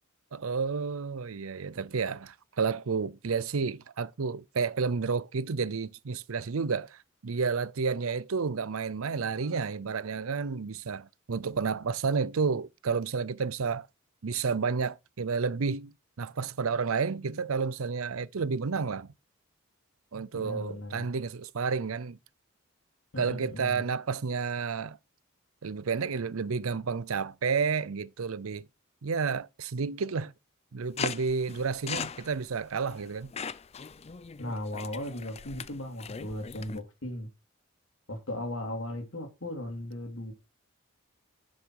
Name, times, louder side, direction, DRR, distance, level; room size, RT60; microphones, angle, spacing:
voice 1, 0.3-13.9 14.2-19.1 20.1-22.2 23.2-25.0 25.6-28.7 29.0-30.3 30.7-33.3, right 5 dB, 80° right, 0.6 m, -31 dB
voice 2, 20.3-21.1 23.1-23.8 34.4-37.3 38.1-40.3, left 1 dB, 65° left, 3.1 m, -37 dB
sound 1, 31.0-36.8, left 6 dB, 30° left, 0.5 m, -39 dB
11.0 x 6.5 x 4.7 m
head